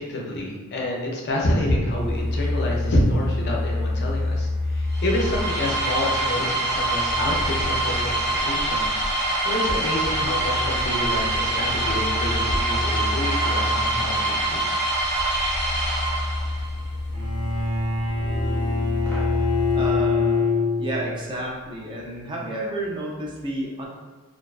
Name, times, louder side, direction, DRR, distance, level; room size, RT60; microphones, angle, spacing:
voice 1, 0.0-8.8 9.4-14.6, left 1 dB, 50° left, -2 dB, 0.5 m, -27 dB
sound 1, 1.9-19.9, left 1 dB, 5° left, 0.7 m, -29 dB
sound 2, 4.9-16.7, right 2 dB, 55° right, 0.8 m, -25 dB
Bowed string instrument, 17.1-21.2, left 4 dB, 85° right, 0.5 m, -24 dB
voice 2, 19.7-20.5 20.8-23.9, right 1 dB, 20° right, -3 dB, 0.3 m, -31 dB
2.4 x 2.2 x 2.3 m, 1.2 s
head